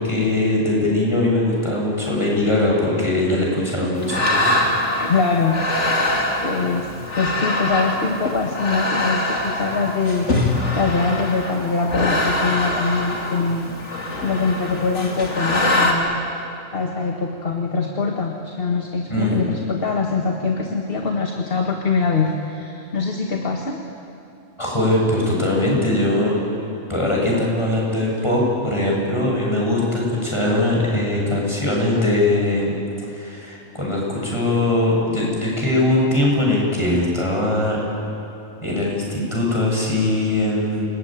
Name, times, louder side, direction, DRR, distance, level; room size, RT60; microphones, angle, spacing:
voice 1, 0.0-4.7 19.1-19.4 24.6-26.3 26.9-32.7 33.1-37.8 38.6-40.9, left 1 dB, 20° left, -3 dB, 7.4 m, -21 dB
sound 1, 4.0-15.9, left 2 dB, 65° left, 3.3 m, -23 dB
voice 2, 5.0-6.0 6.4-6.9 7.2-13.7 14.2-16.2 16.7-23.8, left 4 dB, 45° left, 2 dB, 1.9 m, -23 dB
29.0 x 19.5 x 9.2 m, 2.7 s
omnidirectional pair, 1.3 m